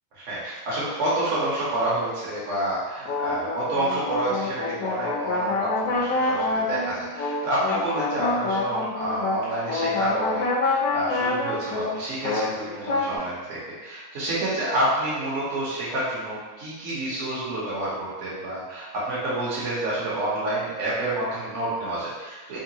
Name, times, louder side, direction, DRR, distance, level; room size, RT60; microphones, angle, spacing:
voice 1, 0.1-22.6, right 1 dB, 55° right, -8 dB, 1.1 m, -29 dB
sound 1, 3.1-13.2, left 2 dB, 75° left, 1.0 m, -26 dB
3.6 x 2.2 x 2.8 m, 1.2 s
omnidirectional pair, 1.6 m